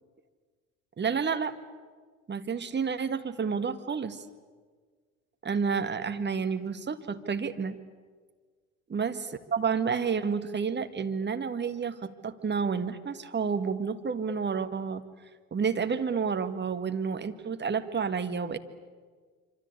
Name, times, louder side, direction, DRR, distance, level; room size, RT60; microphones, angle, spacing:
voice 1, 1.0-1.6 2.3-4.2 5.4-7.8 8.9-15.0 15.5-18.6, right 6 dB, 25° right, 8 dB, 1.9 m, -30 dB
26.0 x 25.5 x 8.5 m, 1.5 s
figure-of-eight pair, 60°, 39 cm